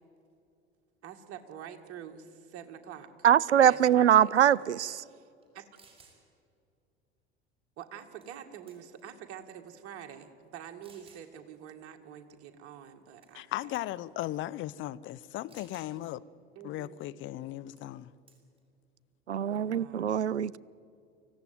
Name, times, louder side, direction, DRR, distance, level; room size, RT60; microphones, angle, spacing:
voice 1, 1.0-3.1 3.6-4.7 5.1-5.3 5.5-5.6 7.8-13.7 16.6-16.9 19.4-20.2, right 9 dB, 45° right, 2.0 m, -46 dB
voice 2, 3.2-5.0 19.3-20.6, right 9 dB, 80° right, 0.5 m, -23 dB
sound 1, 5.4-5.5 5.7-6.2 8.2-8.4 8.7-9.1 9.8-9.9 10.8-11.3 13.2-13.5 13.7-14.0 15.5-15.9 17.8-18.0 18.3-18.6, right 4 dB, 15° right, 5.6 m, -59 dB
voice 3, 13.3-16.2 16.6-18.1, left 14 dB, 35° left, 0.7 m, -37 dB
24.5 x 16.0 x 9.5 m
figure-of-eight pair, 70°, 34 cm